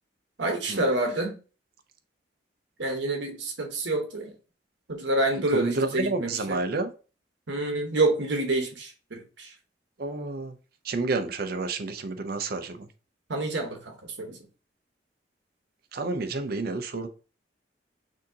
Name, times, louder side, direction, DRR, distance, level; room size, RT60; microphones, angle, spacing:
voice 1, 0.4-1.3 2.8-4.3 4.9-6.6 7.5-9.5 13.3-14.4, right 2 dB, 85° right, 1.1 m, -28 dB
voice 2, 5.5-6.9 10.0-10.5 10.9-12.9 15.9-17.1, right 3 dB, 55° right, 0.5 m, -29 dB
6.2 x 2.7 x 2.8 m
head